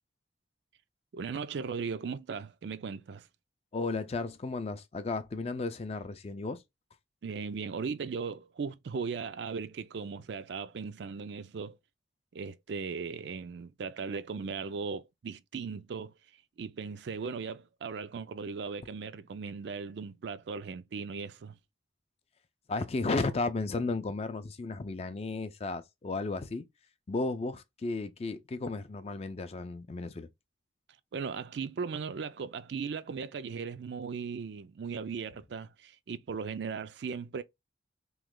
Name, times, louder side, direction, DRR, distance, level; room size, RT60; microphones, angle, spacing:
voice 1, 1.1-3.3 7.2-11.8 12.3-16.1 16.6-21.6 31.1-37.4, right 5 dB, 65° right, 0.4 m, -37 dB
voice 2, 3.7-6.6 22.7-26.7 27.1-30.3, left 3 dB, 35° left, 0.4 m, -34 dB
3.1 x 2.8 x 3.6 m
head